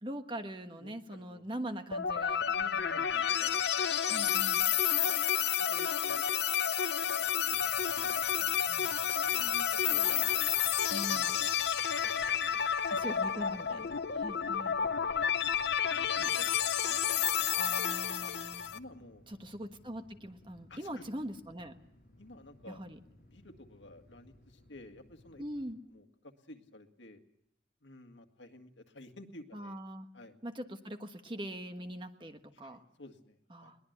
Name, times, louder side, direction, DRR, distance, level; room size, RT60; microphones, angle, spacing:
voice 1, 0.0-3.0 4.1-4.7 8.7-8.9 10.9-11.3 12.9-13.9 14.2-14.8 17.5-18.7 19.3-21.7 22.7-23.0 25.4-25.8 29.5-30.1 30.4-32.8 33.5-33.8, equal, 25° right, 7 dB, 1.3 m, -42 dB
voice 2, 0.8-1.4 2.5-3.6 4.2-5.2 5.6-6.3 7.0-8.6 9.1-10.4 10.8-12.0 12.8-13.1 13.4-15.2 15.9-16.5 16.8-17.8 18.1-18.3 18.7-19.3 20.7-21.0 22.2-22.9 23.2-25.4 25.9-27.2 27.8-29.8 30.1-30.4 32.5-33.7, left 1 dB, 85° left, 6 dB, 1.9 m, -54 dB
sound 1, 1.9-18.8, left 8 dB, 65° left, 0.8 m, -30 dB
sound 2, 7.4-25.7, left 1 dB, 50° left, 6.4 m, -61 dB
22.0 x 20.0 x 8.0 m, 0.77 s
head